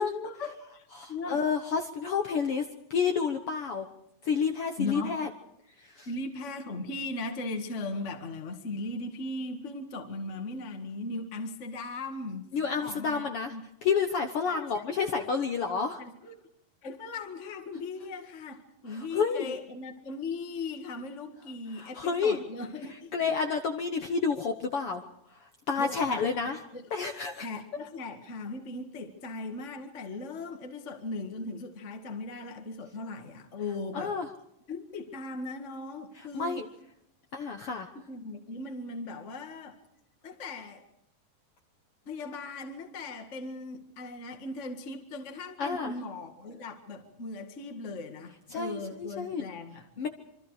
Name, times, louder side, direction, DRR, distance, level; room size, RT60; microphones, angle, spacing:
voice 1, 0.2-1.4 4.8-5.2 6.0-13.6 14.5-15.1 16.0-16.3 16.8-23.3 25.8-26.9 27.4-34.2 34.7-36.6 37.9-39.8 40.2-40.8 42.0-50.1, left 3 dB, 30° left, 5 dB, 1.5 m, -38 dB
voice 2, 1.0-3.9 4.2-5.3 5.8-6.1 12.5-16.0 18.9-19.5 21.8-22.4 23.1-25.0 25.3-25.4 25.7-26.6 26.9-27.5 33.9-34.3 36.3-36.6 37.3-37.9 45.6-45.9 48.5-49.5 50.0-50.1, left 5 dB, 60° left, 5 dB, 1.5 m, -30 dB
26.5 x 24.5 x 4.9 m, 0.74 s
omnidirectional pair, 3.9 m